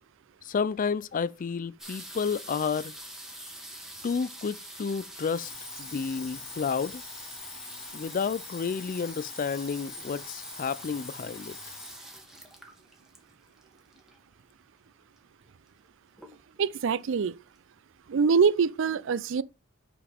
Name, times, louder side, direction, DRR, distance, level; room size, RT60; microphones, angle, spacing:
voice 1, 0.4-2.9 4.0-5.5 5.8-7.0 7.9-11.6, left 5 dB, 40° left, 0.4 m, -31 dB
sound 1, 1.8-14.3 15.2-15.3 15.4-15.8 16.2-16.7 17.3-17.4 17.6-17.7, right 1 dB, ahead, 1.6 m, -45 dB
Alarm, 5.3-12.0, left 4 dB, 80° left, 3.1 m, -44 dB
voice 2, 16.6-17.4 18.1-19.4, right 5 dB, 65° right, 0.4 m, -24 dB
6.1 x 6.0 x 3.5 m
head